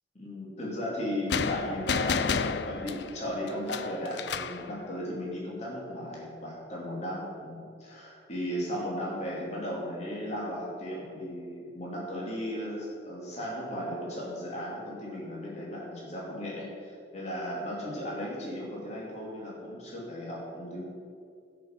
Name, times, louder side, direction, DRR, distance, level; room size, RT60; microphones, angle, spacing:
voice 1, 0.1-20.8, equal, 35° left, -5 dB, 2.6 m, -36 dB
sound 1, 1.3-4.6, left 6 dB, 65° left, 0.5 m, -31 dB
13.5 x 5.9 x 7.3 m, 2.3 s
head